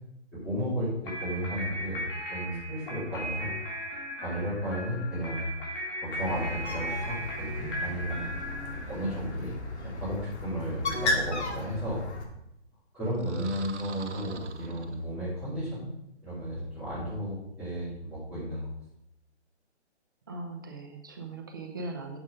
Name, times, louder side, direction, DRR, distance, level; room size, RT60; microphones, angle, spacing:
voice 1, 0.3-2.0 2.3-3.5 4.2-5.5 6.0-8.3 8.9-9.5 9.8-12.0 12.9-15.9 16.2-18.7, equal, 10° left, -14 dB, 3.2 m, -33 dB
sound 1, 1.0-9.3, equal, 50° left, 3.1 m, -37 dB
Bird, 6.1-12.2, left 2 dB, 70° left, 2.2 m, -35 dB
sound 2, 13.1-15.5, right 5 dB, 80° right, 1.1 m, -45 dB
voice 2, 20.3-22.2, right 2 dB, 20° right, 4 dB, 0.6 m, -39 dB
7.8 x 7.3 x 5.1 m, 0.84 s
hypercardioid pair, 170°, 34 cm